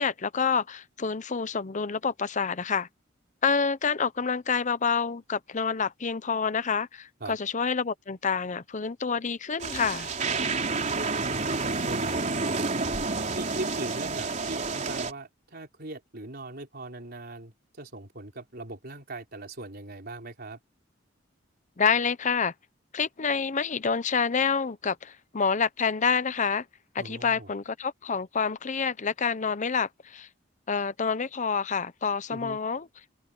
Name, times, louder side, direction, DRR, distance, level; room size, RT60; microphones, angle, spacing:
voice 1, 0.0-2.9 3.4-10.1 21.8-22.5 22.9-26.6 26.9-30.3 30.7-32.9, left 5 dB, 40° left, 0.7 m, -28 dB
sound 1, 9.6-15.1, right 3 dB, 40° right, 3.7 m, -29 dB
voice 2, 11.5-12.7 13.3-20.6 27.0-27.5 32.3-32.6, right 2 dB, 55° right, 4.3 m, -40 dB
open air
head